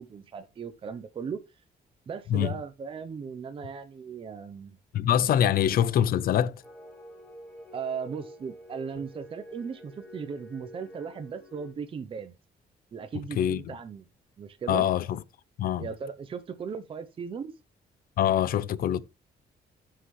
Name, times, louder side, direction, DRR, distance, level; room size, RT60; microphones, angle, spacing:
voice 1, 0.0-1.4 2.1-4.8 5.6-5.7 7.7-12.3 12.9-14.0 14.4-14.9 15.8-17.5, right 6 dB, 30° right, 0.7 m, -37 dB
voice 2, 4.9-6.6 13.4-13.6 14.7-15.2 15.6-15.8 18.2-19.0, left 10 dB, 60° left, 0.6 m, -24 dB
sound 1, 6.6-11.7, equal, ahead, 3.2 m, -48 dB
15.0 x 5.7 x 3.2 m
cardioid pair, 180°, 17 cm